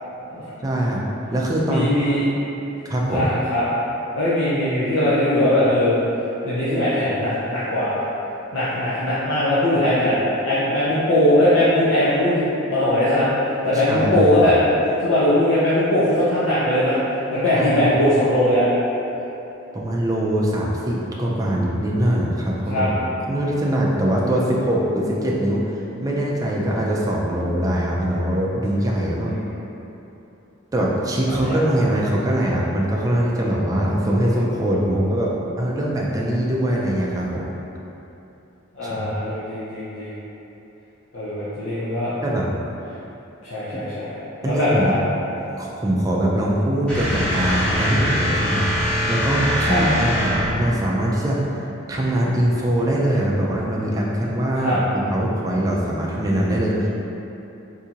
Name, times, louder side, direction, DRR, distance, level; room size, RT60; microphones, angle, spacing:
voice 1, 0.6-1.0 1.3-2.0 2.9-3.3 13.7-14.4 17.5-17.9 19.7-22.9 23.3-25.7 26.0-29.3 30.7-37.5 38.8-39.1 42.2-42.5 43.7-43.8 44.4-44.9 45.6-51.4 51.9-56.9, right 1 dB, 15° right, -4 dB, 0.3 m, -22 dB
voice 2, 1.7-2.3 3.1-3.6 4.1-6.0 6.4-8.0 8.5-13.3 13.6-14.5 15.0-17.0 17.3-18.7 22.7-22.9 29.3-29.4 31.2-31.6 38.7-40.1 41.1-42.1 43.4-44.9 49.7-49.8 54.6-54.8, left 1 dB, 70° left, -12 dB, 0.6 m, -20 dB
sound 1, 46.9-50.8, equal, 5° left, 0.7 m, -22 dB
3.6 x 2.7 x 2.8 m, 3.0 s
head